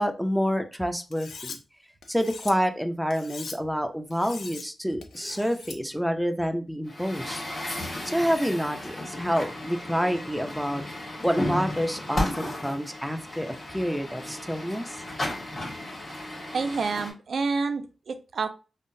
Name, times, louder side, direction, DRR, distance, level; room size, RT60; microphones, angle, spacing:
voice 1, 0.0-1.6 2.1-7.4 8.0-10.8 11.2-15.0, equal, ahead, 6 dB, 0.5 m, -28 dB
Cutlery silverware, 1.1-1.6 2.0-2.5 3.1-3.6 4.1-4.7 5.0-5.8, left 5 dB, 80° left, 0.4 m, -41 dB
Truck, 6.9-17.1, left 1 dB, 45° left, 1.4 m, -34 dB
voice 2, 16.5-18.5, right 4 dB, 70° right, 8 dB, 0.3 m, -28 dB
3.5 x 2.0 x 2.6 m, 0.32 s
cardioid pair, 50°, 0 cm